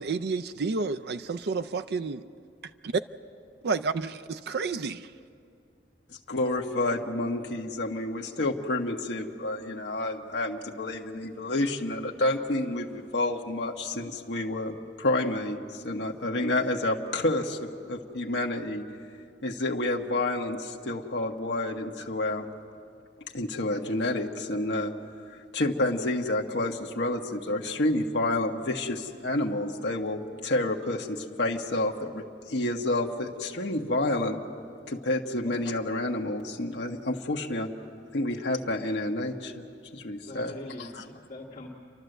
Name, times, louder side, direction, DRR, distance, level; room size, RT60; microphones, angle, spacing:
voice 1, 0.0-2.2 2.8-2.9 3.6-5.1, right 4 dB, 60° right, 10 dB, 0.5 m, -30 dB
voice 2, 6.1-18.8 19.4-22.4 23.3-24.9 25.3-34.4 34.9-37.7 38.1-39.6 39.9-40.5 41.0-41.1, left 2 dB, 75° left, 1 dB, 1.3 m, -29 dB
sound 1, 6.5-9.1, right 3 dB, 5° left, 1.1 m, -48 dB
voice 3, 40.2-41.7, left 1 dB, 40° left, -8 dB, 2.2 m, -42 dB
30.0 x 12.0 x 7.9 m, 2.4 s
head